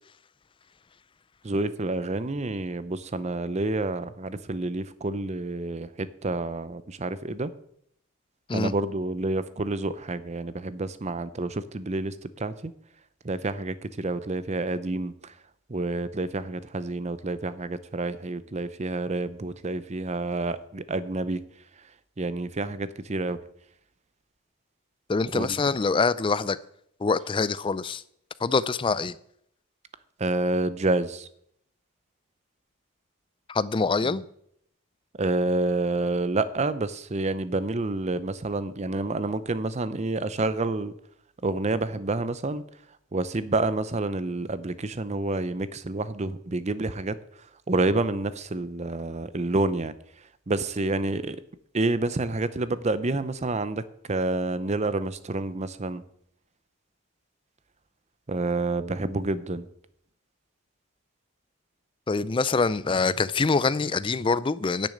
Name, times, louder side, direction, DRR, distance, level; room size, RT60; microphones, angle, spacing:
voice 1, 1.4-7.5 8.5-12.7 13.2-15.4 15.7-21.4 22.2-23.4 25.3-25.6 30.2-31.3 34.0-34.1 35.2-40.9 41.4-42.6 43.1-47.2 47.7-49.9 50.5-51.4 51.7-53.8 54.1-56.0 58.3-59.7, right 2 dB, 30° right, 0.6 m, -28 dB
voice 2, 25.1-26.6 27.0-28.0 28.4-29.2 33.5-34.3 62.1-64.9, left 4 dB, 20° left, 0.4 m, -25 dB
10.5 x 6.4 x 8.6 m
head